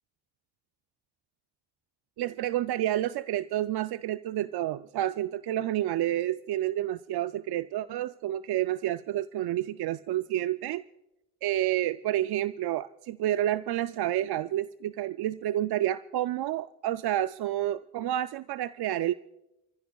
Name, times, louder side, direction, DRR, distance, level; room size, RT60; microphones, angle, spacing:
voice 1, 2.2-10.8 11.4-19.1, right 13 dB, 70° right, 13 dB, 0.5 m, -29 dB
29.0 x 15.0 x 2.3 m, 0.92 s
supercardioid pair, 55°, 40 cm